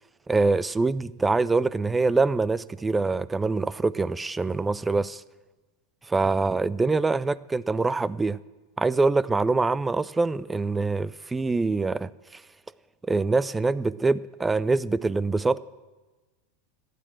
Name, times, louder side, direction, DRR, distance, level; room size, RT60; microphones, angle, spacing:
voice 1, 0.3-5.2 6.1-8.4 8.8-12.1 13.1-15.6, right 3 dB, 15° right, 20 dB, 0.4 m, -24 dB
13.5 x 9.4 x 7.5 m, 1.2 s
hypercardioid pair, 115°, 0 cm